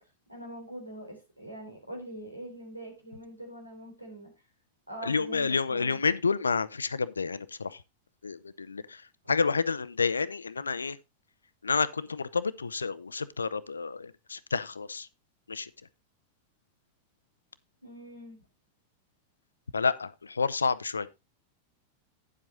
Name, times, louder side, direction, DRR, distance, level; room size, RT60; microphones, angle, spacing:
voice 1, 0.3-4.3 4.9-6.0 17.8-18.4, right 1 dB, 85° right, 3.7 m, -43 dB
voice 2, 5.0-7.8 8.2-11.0 11.6-15.1 15.5-15.7 19.7-21.1, left 5 dB, 75° left, 0.5 m, -29 dB
9.8 x 7.5 x 3.8 m
figure-of-eight pair, 90°, 0 cm